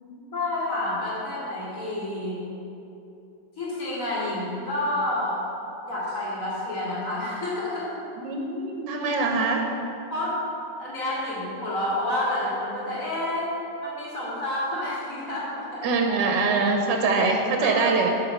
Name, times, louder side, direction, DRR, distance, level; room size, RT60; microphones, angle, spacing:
voice 1, 0.3-2.4 3.6-5.4 5.9-7.9 10.1-10.4 10.8-13.5 13.8-15.9 17.6-18.1, left 1 dB, 45° left, -8 dB, 2.7 m, -29 dB
voice 2, 8.2-9.6 15.8-18.1, right 4 dB, 85° right, 2 dB, 1.4 m, -23 dB
8.7 x 4.6 x 6.3 m, 2.8 s
omnidirectional pair, 1.9 m